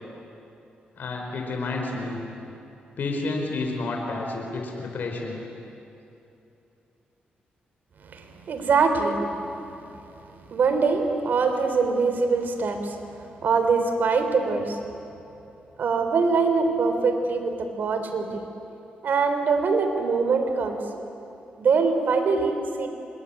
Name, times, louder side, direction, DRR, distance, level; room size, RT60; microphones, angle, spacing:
voice 1, 1.0-2.2 3.0-5.4, left 3 dB, 65° left, 1 dB, 4.7 m, -30 dB
voice 2, 8.1-9.5 9.8-9.9 10.5-13.0 13.4-14.8 15.8-18.4 19.0-20.8 21.6-22.9, right 4 dB, 65° right, 6 dB, 3.5 m, -23 dB
26.0 x 21.0 x 10.0 m, 2.9 s
cardioid pair, 90°, 3 cm